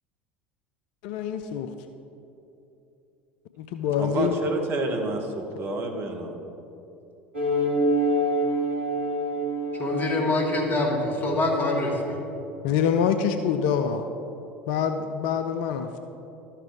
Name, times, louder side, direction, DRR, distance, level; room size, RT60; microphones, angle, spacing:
voice 1, 1.0-1.7 3.6-4.3 12.6-14.0 14.7-16.0, left 7 dB, 60° left, 7 dB, 0.4 m, -25 dB
voice 2, 4.0-6.4, right 2 dB, 40° right, 3 dB, 1.1 m, -29 dB
sound 1, 7.3-12.3, right 1 dB, 85° right, 1.4 m, -27 dB
voice 3, 9.8-12.2, left 2 dB, 30° left, -1 dB, 1.9 m, -25 dB
12.5 x 5.8 x 3.3 m, 2.9 s
figure-of-eight pair, 70°, 6 cm